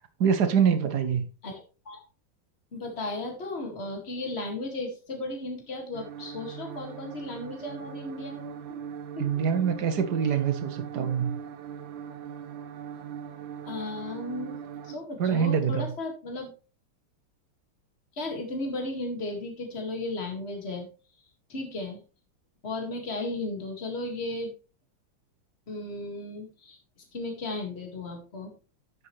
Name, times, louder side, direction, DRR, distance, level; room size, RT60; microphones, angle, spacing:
voice 1, 0.2-1.2 9.2-11.4 15.2-15.9, right 7 dB, 55° right, 1.3 m, -25 dB
voice 2, 1.4-2.0 2.7-8.8 9.2-9.3 10.2-10.3 13.6-14.6 14.8-16.5 18.1-20.9 21.5-22.0 22.6-24.5 25.7-26.8 27.1-28.5, left 2 dB, 30° left, 2.2 m, -35 dB
sound 1, 5.9-15.0, right 8 dB, 70° right, 1.4 m, -40 dB
9.6 x 7.8 x 3.2 m
omnidirectional pair, 2.4 m